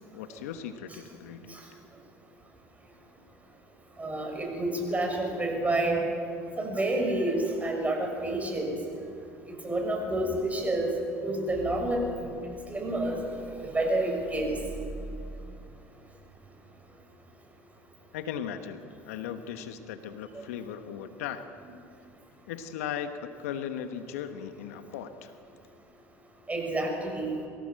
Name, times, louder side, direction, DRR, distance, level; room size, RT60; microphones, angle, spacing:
voice 1, 0.1-1.6 18.1-21.5 22.5-25.3, left 8 dB, 80° left, 9 dB, 1.2 m, -37 dB
voice 2, 4.0-6.0 6.6-8.8 9.5-10.9 11.2-12.3 12.7-13.2 13.6-14.6 20.3-20.4 26.5-27.3, right 1 dB, 20° right, 2 dB, 6.6 m, -29 dB
23.0 x 17.0 x 7.7 m, 2.5 s
hypercardioid pair, 75°, 8 cm